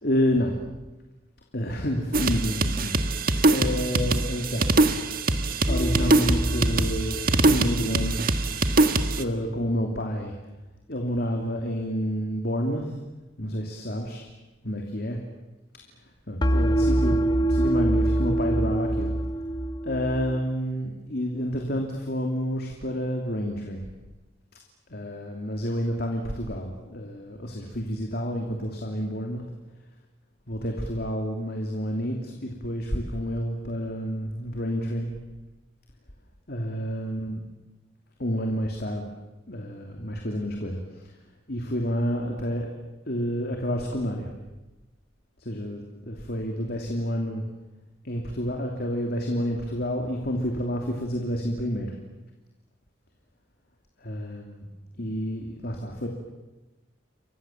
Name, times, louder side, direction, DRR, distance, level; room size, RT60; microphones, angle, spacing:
voice 1, 0.0-0.6 1.5-3.2 3.4-4.8 5.7-8.5 9.2-10.3 10.9-12.9 13.4-14.3 14.6-15.2 16.3-19.1 19.8-23.8 24.9-29.4 30.5-35.1 36.5-37.4 38.2-39.1 39.5-41.1 41.5-42.7 43.1-44.3 45.4-47.4 48.0-51.9 54.0-54.7 55.0-56.1, equal, 55° left, 2 dB, 2.9 m, -29 dB
sound 1, 2.1-9.2, right 2 dB, 50° right, 1.5 m, -23 dB
sound 2, 5.7-8.8 16.4-20.4, right 1 dB, 20° left, 1.0 m, -25 dB
30.0 x 24.0 x 7.4 m, 1.1 s
head